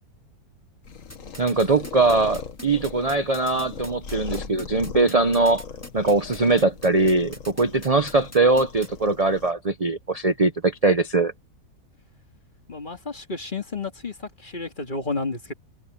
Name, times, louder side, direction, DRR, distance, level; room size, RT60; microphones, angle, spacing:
sound 1, 0.8-9.5, left 6 dB, 55° left, 1.8 m, -40 dB
sound 2, 1.1-8.9, left 1 dB, 10° left, 1.8 m, -42 dB
voice 1, 1.4-5.6 5.9-11.3, right 3 dB, 30° right, 0.8 m, -21 dB
voice 2, 12.7-15.5, left 3 dB, 30° left, 2.2 m, -31 dB
omnidirectional pair, 1.7 m